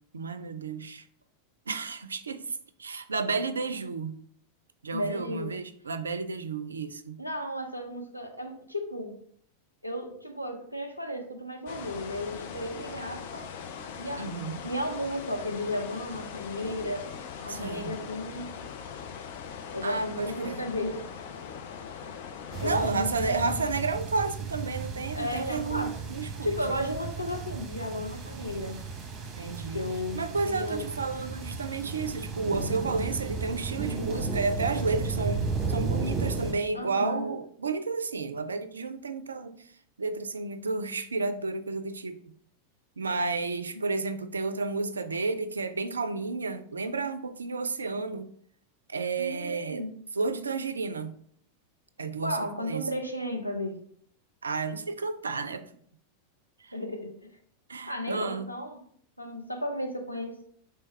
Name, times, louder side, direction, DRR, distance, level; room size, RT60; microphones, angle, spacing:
voice 1, 0.1-1.0 1.7-4.2 4.8-7.2 14.2-14.6 17.5-17.9 19.8-20.6 22.6-26.6 29.4-29.8 30.1-39.7 40.0-42.2 43.0-48.3 48.9-49.9 50.1-51.1 52.0-52.9 54.4-55.7 56.6-56.7 57.7-58.5, right 4 dB, 75° right, 0.4 m, -32 dB
voice 2, 4.9-5.5 7.2-9.1 9.8-13.5 14.0-14.2 14.6-17.1 17.4-18.6 19.7-21.0 22.6-23.7 25.1-25.9 26.4-28.8 29.7-30.8 36.7-37.3 49.2-49.9 52.2-53.8 56.7-57.1 57.9-58.8 59.2-60.4, left 1 dB, 90° left, 0.7 m, -34 dB
sound 1, 11.7-22.9, left 7 dB, 50° left, 0.5 m, -41 dB
sound 2, 22.5-36.5, right 4 dB, 30° right, 0.9 m, -34 dB
3.4 x 3.4 x 4.2 m
figure-of-eight pair, 90°, 0 cm